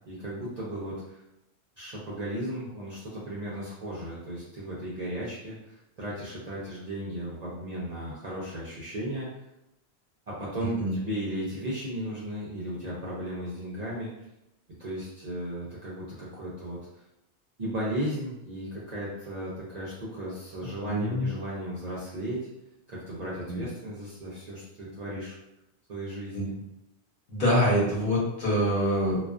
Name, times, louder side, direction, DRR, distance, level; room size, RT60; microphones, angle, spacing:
voice 1, 0.1-1.2 1.8-9.3 10.3-14.1 14.8-16.8 17.6-22.5 22.9-25.4 25.9-26.5, equal, 50° right, -7 dB, 0.5 m, -35 dB
voice 2, 20.8-21.3 23.5-23.6 26.3-26.6 27.3-29.2, equal, 50° left, -6 dB, 1.0 m, -25 dB
2.3 x 2.3 x 2.3 m, 0.86 s
omnidirectional pair, 1.1 m